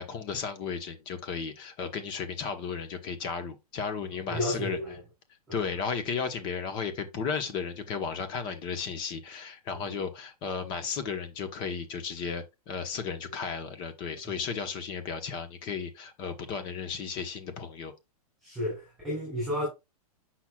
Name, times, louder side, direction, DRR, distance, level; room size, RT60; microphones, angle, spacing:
voice 1, 0.0-4.8 5.5-17.9, left 6 dB, 25° left, 1.0 m, -34 dB
voice 2, 4.3-5.0 5.5-5.7 9.8-10.0 14.3-14.4 18.4-19.7, left 1 dB, ahead, 3.7 m, -32 dB
7.9 x 5.9 x 2.3 m
hypercardioid pair, 165°, 20 cm